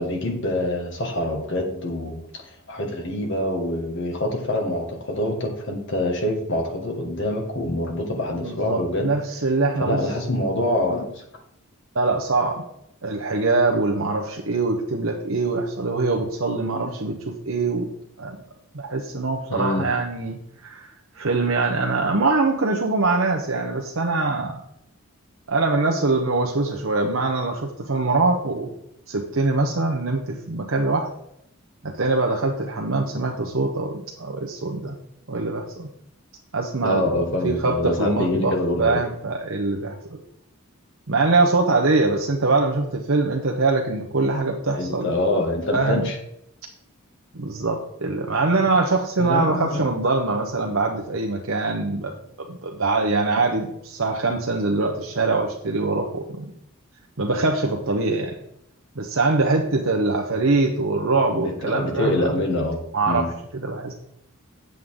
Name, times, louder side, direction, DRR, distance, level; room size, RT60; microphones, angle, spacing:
voice 1, 0.0-2.4 2.7-9.1 9.8-11.2 16.7-16.9 19.5-19.9 36.8-39.0 44.8-46.2 49.2-49.9 61.3-62.8 63.1-63.3, left 1 dB, 60° left, 2 dB, 1.9 m, -25 dB
voice 2, 8.4-10.0 11.9-12.6 13.0-18.4 18.7-24.6 25.5-28.7 29.1-31.1 31.8-35.0 35.3-35.9 36.5-37.1 37.4-40.2 41.1-45.1 45.7-46.1 47.3-56.5 57.2-58.3 58.9-62.3 62.9-63.9, right 3 dB, 65° right, 1 dB, 1.0 m, -23 dB
8.5 x 7.9 x 3.8 m, 0.74 s
head